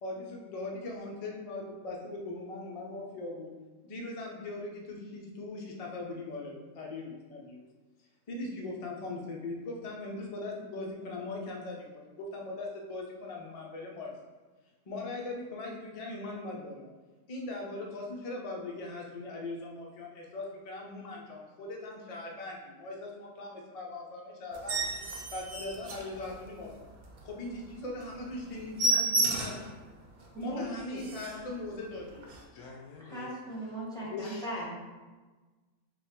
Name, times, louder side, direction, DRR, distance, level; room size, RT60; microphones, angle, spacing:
voice 1, 0.0-3.5 3.8-7.6 8.3-14.3 14.9-16.9 17.3-25.0 25.3-26.9 27.2-29.6 30.4-32.3, left 2 dB, 60° left, -1 dB, 0.3 m, -40 dB
sound 1, 24.5-26.7 27.1-27.2 27.6-27.7 28.0-28.1 28.4-29.7 30.2-30.3 30.7-30.8 31.0-31.5 32.2-32.4, right 2 dB, 85° right, 1.2 m, -31 dB
voice 2, 30.3-31.0 33.0-34.7, right 1 dB, 5° left, -7 dB, 0.7 m, -38 dB
voice 3, 32.5-33.3 34.0-34.4, left 5 dB, 85° left, 0 dB, 1.1 m, -42 dB
3.4 x 2.3 x 4.3 m, 1.3 s
omnidirectional pair, 1.5 m